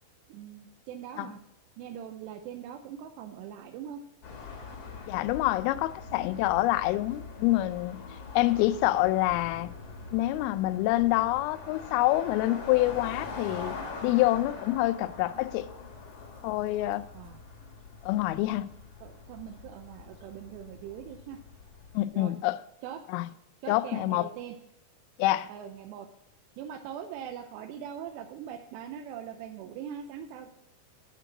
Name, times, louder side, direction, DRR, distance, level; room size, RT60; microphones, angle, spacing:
voice 1, 0.3-1.4 1.8-4.0 17.1-17.4 19.0-21.4 22.1-22.4 22.8-23.0 23.6-24.5 25.5-26.1 26.6-30.5, right 9 dB, 85° right, 2.8 m, -41 dB
sound 1, 4.2-22.0, left 4 dB, 60° left, 1.7 m, -43 dB
voice 2, 5.1-8.0 8.4-9.7 10.1-15.7 16.4-17.0 18.0-18.7 21.9-22.6 23.1-23.3 23.7-24.3 25.2-25.5, left 16 dB, 90° left, 2.2 m, -26 dB
11.5 x 4.7 x 5.9 m
omnidirectional pair, 5.0 m